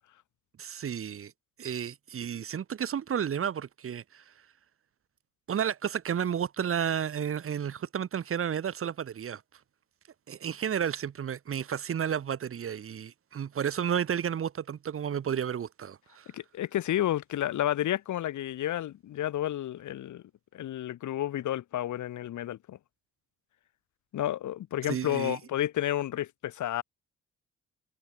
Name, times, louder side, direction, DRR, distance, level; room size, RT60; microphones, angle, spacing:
voice 1, 0.6-1.3 1.6-4.2 5.5-9.4 10.3-16.3 24.9-25.4, right 8 dB, 45° right, 1.4 m, -32 dB
voice 2, 16.3-20.2 20.5-22.8 24.1-26.8, left 12 dB, 75° left, 3.6 m, -31 dB
cardioid pair, 90°, 30 cm